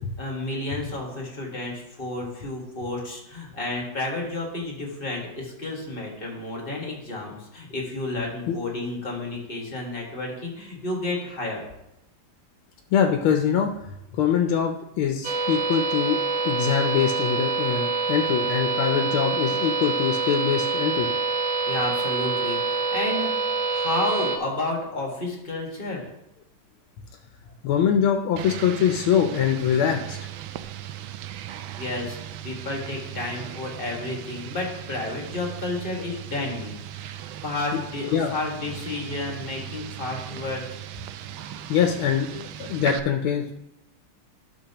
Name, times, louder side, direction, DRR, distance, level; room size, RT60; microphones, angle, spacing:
voice 1, 0.2-11.7 21.7-26.1 31.8-32.2 32.4-37.1 37.4-40.6, left 2 dB, 30° left, -1 dB, 1.7 m, -31 dB
voice 2, 12.9-13.7 14.1-16.2 16.4-21.1 27.6-30.2 37.7-37.8 38.1-38.3 41.7-43.6, left 8 dB, 85° left, 4 dB, 1.5 m, -23 dB
sound 1, 15.2-24.4, right 4 dB, 60° right, 0.8 m, -26 dB
sound 2, 28.4-43.0, right 11 dB, 80° right, 1.4 m, -38 dB
11.5 x 6.6 x 2.9 m, 0.86 s
omnidirectional pair, 2.2 m